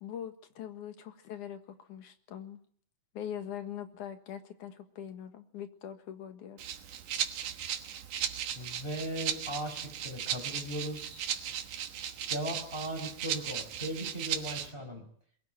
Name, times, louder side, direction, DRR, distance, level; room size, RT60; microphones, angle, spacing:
voice 1, 0.0-2.6 3.1-6.6, left 9 dB, 75° left, 7 dB, 3.0 m, -42 dB
Rattle (instrument), 6.6-14.7, right 9 dB, 85° right, 2.9 m, -36 dB
voice 2, 8.6-11.3 12.3-15.0, right 1 dB, 15° left, 1 dB, 5.4 m, -38 dB
22.0 x 16.0 x 9.0 m, 0.62 s
omnidirectional pair, 3.6 m